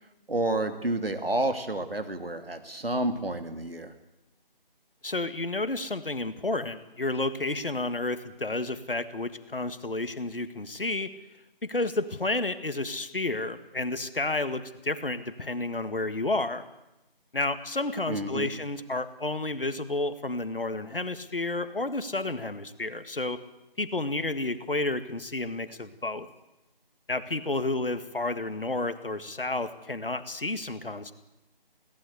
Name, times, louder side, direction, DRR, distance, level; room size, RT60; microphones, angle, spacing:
voice 1, 0.3-3.9 18.1-18.5, right 2 dB, 75° right, 7 dB, 2.8 m, -30 dB
voice 2, 5.0-11.1 11.6-16.7 17.3-23.4 23.8-26.3 27.1-31.1, left 2 dB, 70° left, 11 dB, 1.8 m, -31 dB
21.0 x 17.5 x 8.2 m, 0.94 s
figure-of-eight pair, 165°, 29 cm